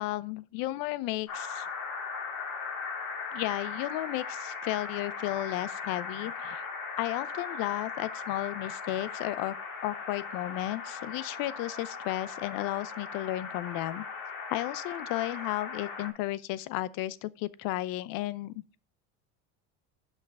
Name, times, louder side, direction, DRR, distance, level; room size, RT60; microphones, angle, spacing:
voice 1, 0.0-1.7 3.3-6.7 7.0-9.5 9.8-14.0 14.5-18.5, left 16 dB, 65° left, 0.7 m, -33 dB
sound 1, 1.3-16.1, left 5 dB, 50° left, 2.1 m, -38 dB
5.8 x 5.7 x 5.3 m
supercardioid pair, 95°, 37 cm